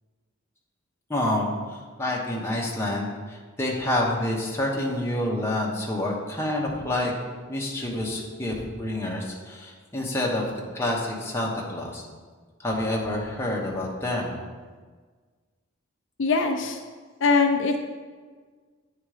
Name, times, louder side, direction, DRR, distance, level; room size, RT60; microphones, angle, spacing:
voice 1, 1.1-7.1 7.5-10.5 10.7-12.0 12.6-14.3, left 1 dB, 15° left, -3 dB, 1.1 m, -28 dB
voice 2, 16.2-16.8 17.2-17.8, left 4 dB, 65° left, 5 dB, 0.5 m, -22 dB
9.1 x 3.8 x 4.9 m, 1.5 s
head